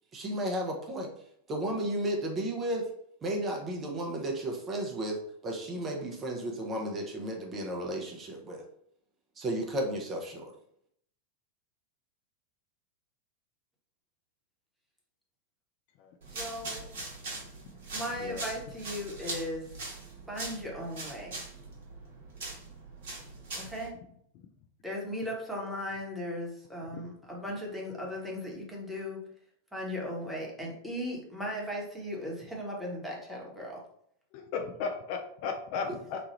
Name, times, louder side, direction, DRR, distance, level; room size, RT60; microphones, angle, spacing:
voice 1, 0.1-1.1 1.5-2.8 3.2-8.6 9.4-10.5, right 1 dB, 25° right, 0 dB, 0.6 m, -33 dB
sound 1, 16.2-23.9, right 2 dB, 55° right, 1.0 m, -41 dB
voice 2, 16.3-16.9 17.9-19.7 20.3-21.4 23.6-23.9 24.8-29.2 29.7-33.8, equal, 5° right, -3 dB, 1.0 m, -37 dB
voice 3, 34.3-36.2, left 5 dB, 45° left, 4 dB, 0.4 m, -35 dB
3.0 x 2.3 x 3.0 m, 0.69 s
figure-of-eight pair, 90°, 0 cm